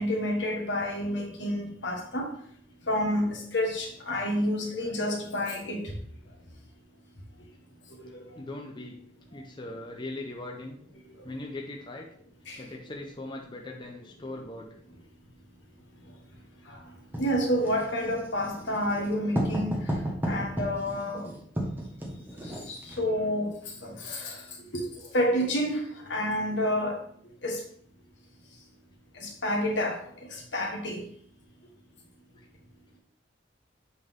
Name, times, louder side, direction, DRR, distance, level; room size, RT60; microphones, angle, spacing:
voice 1, 0.0-2.3 2.9-5.9 8.1-8.2 12.5-12.6 16.7-16.8 17.2-19.8 20.2-21.3 22.4-23.6 23.8-24.4 24.7-25.8 26.1-27.0 27.4-27.6 29.2-30.0 30.3-31.0, equal, 70° left, 1 dB, 1.5 m, -29 dB
voice 2, 8.4-9.0 9.3-10.8 11.2-12.1 12.6-14.7, left 2 dB, 25° left, 0 dB, 0.7 m, -39 dB
Writing, 17.1-23.1, equal, 10° right, 1.4 m, -33 dB
7.8 x 4.0 x 3.7 m, 0.62 s
head